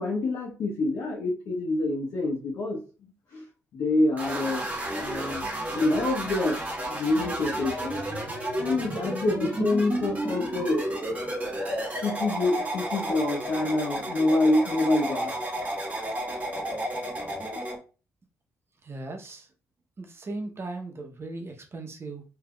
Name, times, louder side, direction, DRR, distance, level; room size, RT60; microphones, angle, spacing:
voice 1, 0.0-2.8 3.3-3.4 3.7-4.7 5.0-6.6 6.9-8.0 8.6-10.8 12.0-15.3, left 2 dB, 70° left, -4 dB, 1.0 m, -26 dB
sound 1, 4.2-17.8, right 1 dB, 25° right, 1.2 m, -32 dB
voice 2, 18.8-19.5 20.0-22.2, right 2 dB, 45° right, 3 dB, 0.8 m, -37 dB
3.4 x 2.8 x 2.3 m, 0.34 s
supercardioid pair, 60°, 6 cm